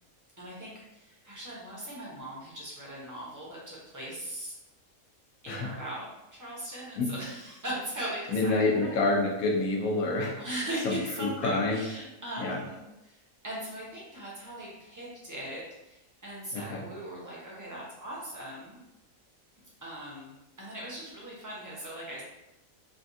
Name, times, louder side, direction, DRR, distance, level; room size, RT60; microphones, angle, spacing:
voice 1, 0.4-4.5 5.4-9.0 10.4-18.8 19.8-22.2, right 1 dB, 20° right, -6 dB, 0.6 m, -39 dB
voice 2, 8.3-10.4 10.8-11.8 12.4-12.6 16.5-16.8, left 2 dB, 90° left, 0 dB, 1.1 m, -27 dB
3.3 x 2.2 x 2.6 m, 0.93 s
omnidirectional pair, 1.4 m